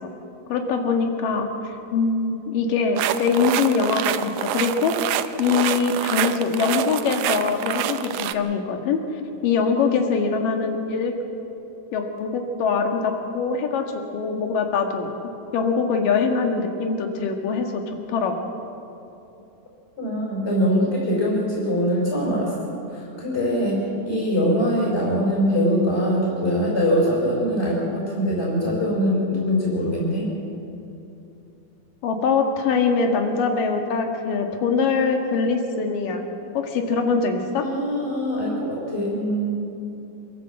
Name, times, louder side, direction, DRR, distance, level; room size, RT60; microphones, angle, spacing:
voice 1, 0.5-4.9 5.4-9.0 9.4-11.1 11.9-15.1 15.5-17.8 18.1-18.3 32.0-36.3 36.5-37.7, left 5 dB, 65° left, 4 dB, 3.2 m, -23 dB
sound 1, 3.0-8.3, right 12 dB, 85° right, 1.7 m, -26 dB
voice 2, 20.0-22.5 22.9-30.3 37.6-39.6, equal, 15° left, -5 dB, 5.6 m, -23 dB
27.0 x 13.5 x 7.7 m, 2.8 s
omnidirectional pair, 4.3 m